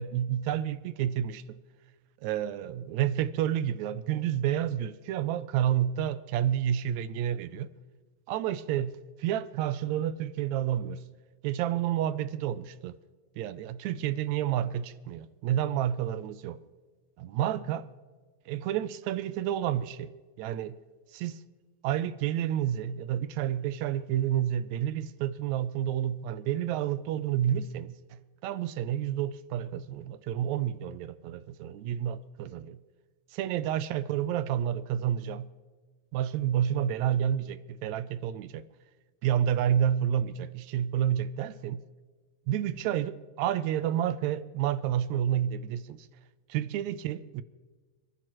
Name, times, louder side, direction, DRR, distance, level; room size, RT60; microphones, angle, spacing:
voice 1, 0.0-1.6 2.2-7.7 8.3-11.0 11.4-13.0 13.4-16.6 17.2-17.9 18.5-20.1 20.4-20.8 21.1-21.4 21.8-32.8 33.3-35.5 36.1-38.6 39.2-41.8 42.5-46.1 46.5-47.4, right 10 dB, 80° right, 1.8 m, -30 dB
28.5 x 15.0 x 3.1 m
omnidirectional pair, 3.4 m